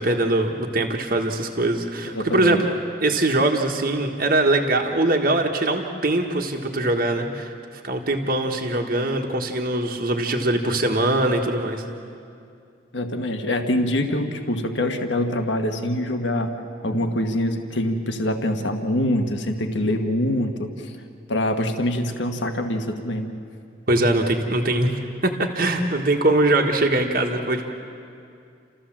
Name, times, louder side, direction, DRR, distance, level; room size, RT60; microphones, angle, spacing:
voice 1, 0.0-2.7 3.0-7.5 7.8-11.8 23.9-27.7, right 2 dB, 45° right, 2 dB, 1.5 m, -22 dB
voice 2, 2.1-2.6 12.9-16.5 16.8-20.9 21.3-23.3, left 1 dB, 70° left, 5 dB, 1.5 m, -24 dB
30.0 x 14.5 x 7.5 m, 2.4 s
head